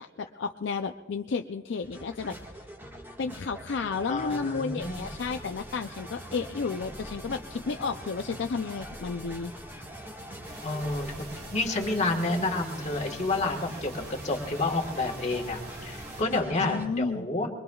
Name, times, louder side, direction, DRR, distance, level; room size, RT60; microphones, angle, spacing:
voice 1, 0.0-2.4 3.2-9.5 16.6-17.3, left 5 dB, 65° left, 6 dB, 0.4 m, -32 dB
sound 1, 1.8-16.9, equal, 10° right, 1.6 m, -43 dB
voice 2, 4.1-5.0 10.6-11.1 11.5-17.5, left 2 dB, 35° left, 3 dB, 1.5 m, -29 dB
sound 2, 10.4-16.2, right 2 dB, 55° right, 2.7 m, -47 dB
23.0 x 22.0 x 2.3 m, 1.4 s
head